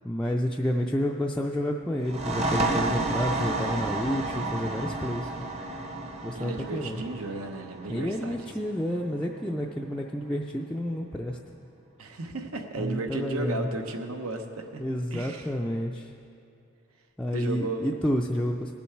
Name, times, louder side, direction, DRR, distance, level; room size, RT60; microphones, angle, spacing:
voice 1, 0.0-5.5 6.2-7.0 7.9-11.4 12.8-13.7 14.8-16.1 17.2-18.7, equal, 5° left, -2 dB, 0.3 m, -30 dB
sound 1, 2.0-9.4, right 2 dB, 30° right, 0.8 m, -31 dB
voice 2, 6.3-8.4 12.0-14.8 15.1-15.5 17.3-17.9, right 2 dB, 85° right, 5 dB, 0.9 m, -34 dB
18.5 x 7.1 x 4.5 m, 2.6 s
head